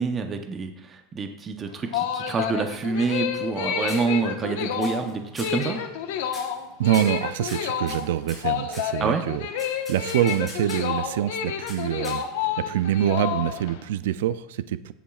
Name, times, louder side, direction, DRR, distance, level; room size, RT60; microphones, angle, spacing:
voice 1, 0.0-5.8 9.0-9.2, right 4 dB, 20° right, 5 dB, 0.7 m, -27 dB
sound 1, 1.7-13.8, left 8 dB, 80° left, 1.1 m, -29 dB
sound 2, 2.9-3.6 3.9-4.5 4.8-5.1 5.4-5.7 6.3-6.6 6.9-8.9 9.6-11.0 11.7-12.5, left 1 dB, ahead, 4.0 m, -42 dB
voice 2, 6.8-12.2 12.6-14.9, right 11 dB, 90° right, 14 dB, 0.4 m, -25 dB
16.0 x 7.1 x 2.4 m, 0.85 s
supercardioid pair, 155°, 0 cm